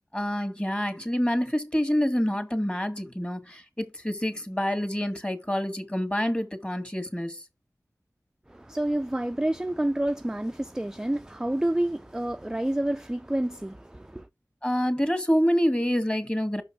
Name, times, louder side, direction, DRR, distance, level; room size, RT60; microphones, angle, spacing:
voice 1, 0.1-7.4 14.6-16.6, equal, 15° left, 2.0 m, -27 dB
voice 2, 8.5-14.3, right 1 dB, 10° right, 0.4 m, -29 dB
6.2 x 5.2 x 6.0 m
wide cardioid pair, 45°, 6 cm